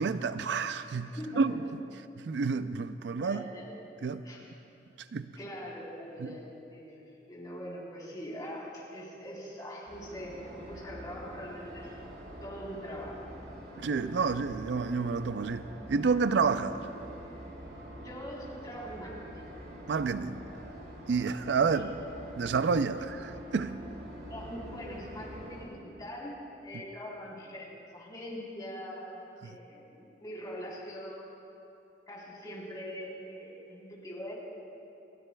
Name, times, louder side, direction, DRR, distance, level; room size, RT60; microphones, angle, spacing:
voice 1, 0.0-1.1 1.4-1.6 2.3-3.5 4.0-4.3 5.1-5.3 6.2-6.3 13.8-16.9 19.9-20.4 21.1-21.9 22.4-23.8 29.4-29.6, right 5 dB, 85° right, 12 dB, 0.4 m, -29 dB
voice 2, 1.0-1.4 3.2-3.7 4.2-4.4 5.4-11.9 12.4-13.4 18.0-19.5 24.3-26.4 26.6-29.1 29.4-31.2 32.1-34.3, equal, 20° left, -6 dB, 3.7 m, -42 dB
sound 1, 9.9-25.6, equal, 65° right, 2.6 m, -46 dB
30.0 x 13.0 x 2.3 m, 2.8 s
head